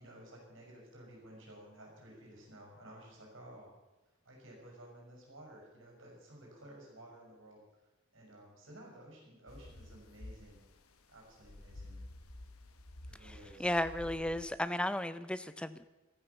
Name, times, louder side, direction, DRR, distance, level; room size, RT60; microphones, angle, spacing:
voice 1, 0.0-3.8 4.2-7.6 8.1-10.6 11.1-12.0 13.1-13.7, right 1 dB, 60° right, -1 dB, 6.2 m, -54 dB
sound 1, 9.5-14.6, left 1 dB, 90° left, 1.3 m, -51 dB
voice 2, 13.6-15.9, left 1 dB, 5° left, 13 dB, 0.5 m, -34 dB
14.0 x 13.5 x 7.0 m, 1.1 s
head